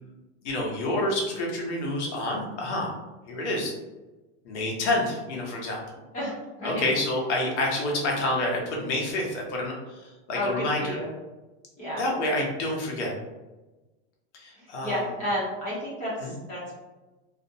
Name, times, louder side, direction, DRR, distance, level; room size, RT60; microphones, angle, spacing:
voice 1, 0.4-2.9 3.3-3.7 4.4-5.8 6.6-10.0 10.3-10.8 12.0-13.1 14.3-15.0 16.2-16.4, left 1 dB, 85° left, -1 dB, 0.9 m, -28 dB
voice 2, 10.3-11.1 11.8-12.0 14.6-16.7, left 1 dB, 20° left, -7 dB, 0.7 m, -31 dB
2.4 x 2.1 x 2.7 m, 1.1 s
supercardioid pair, 165°, 34 cm